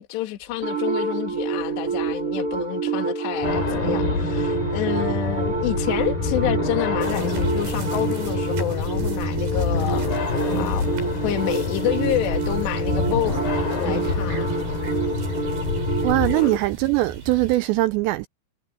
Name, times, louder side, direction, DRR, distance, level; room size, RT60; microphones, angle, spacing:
voice 1, 0.0-10.1 10.6-10.9 11.2-13.4 13.8-14.5 16.3-16.6, left 13 dB, 65° left, 3.9 m, -28 dB
sound 1, 0.6-16.6, right 5 dB, 30° right, 4.4 m, -28 dB
sound 2, 3.4-16.3, left 4 dB, 50° left, 6.0 m, -27 dB
sound 3, 7.0-17.6, right 5 dB, 55° right, 7.0 m, -39 dB
voice 2, 16.0-18.3, right 18 dB, 90° right, 2.5 m, -21 dB
omnidirectional pair, 5.7 m